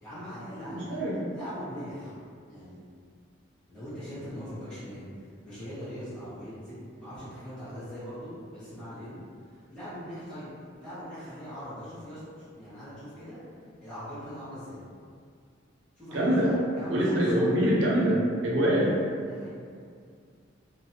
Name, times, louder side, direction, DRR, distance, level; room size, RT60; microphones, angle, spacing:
voice 1, 0.0-2.1 2.5-2.8 3.7-10.5 10.8-13.4 13.8-14.8 16.0-17.8 18.8-18.9 19.3-19.5, equal, 5° left, -16 dB, 0.8 m, -41 dB
voice 2, 0.6-1.3 16.1-16.5 16.9-18.9, equal, 75° right, -4 dB, 0.6 m, -25 dB
2.5 x 2.1 x 2.7 m, 2.2 s
head